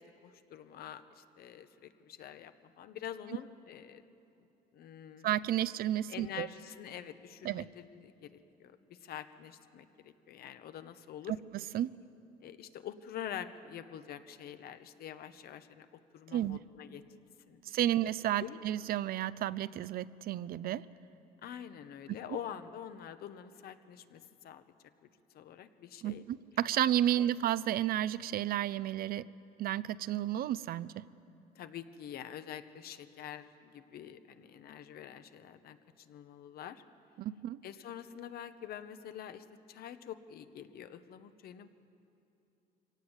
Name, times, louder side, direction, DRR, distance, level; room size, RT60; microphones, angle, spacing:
voice 1, 0.0-4.0 4.7-5.3 6.1-11.3 12.4-15.9 16.1-17.0 17.5-17.6 18.4-18.6 21.4-24.6 25.0-25.1 25.3-26.2 31.5-36.8 37.6-41.7, left 10 dB, 65° left, 10 dB, 1.1 m, -46 dB
voice 2, 5.2-6.5 7.4-7.7 11.5-11.9 16.3-16.6 17.6-20.9 26.0-29.3 29.6-31.1 37.2-37.6, right 12 dB, 60° right, 17 dB, 0.6 m, -32 dB
24.0 x 17.5 x 8.1 m, 2.8 s
cardioid pair, 110°, 17 cm